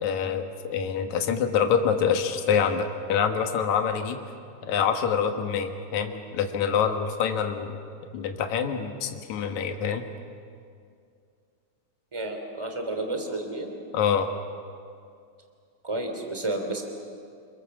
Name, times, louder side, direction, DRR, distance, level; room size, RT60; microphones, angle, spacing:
voice 1, 0.0-4.2 4.6-7.8 8.1-10.1 13.9-14.3, left 7 dB, 75° left, 5 dB, 2.7 m, -26 dB
voice 2, 12.1-13.7 15.8-16.8, right 2 dB, 10° right, 4 dB, 2.7 m, -31 dB
28.5 x 22.0 x 7.2 m, 2.4 s
omnidirectional pair, 3.4 m